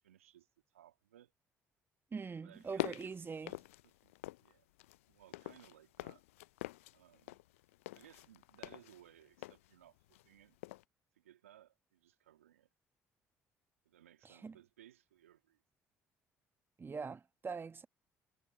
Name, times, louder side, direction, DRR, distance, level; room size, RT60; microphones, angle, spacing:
voice 1, 0.0-1.3 2.4-4.7 5.1-6.2 6.9-7.4 7.9-10.6 11.1-12.7 13.9-15.6, right 12 dB, 85° right, 1.8 m, -62 dB
voice 2, 2.1-3.5 14.2-14.5 16.8-17.9, right 5 dB, 30° right, 1.3 m, -43 dB
sound 1, 2.5-4.5 4.8-10.4 10.6-10.8, left 19 dB, 75° left, 0.4 m, -45 dB
figure-of-eight pair, 50°, 7 cm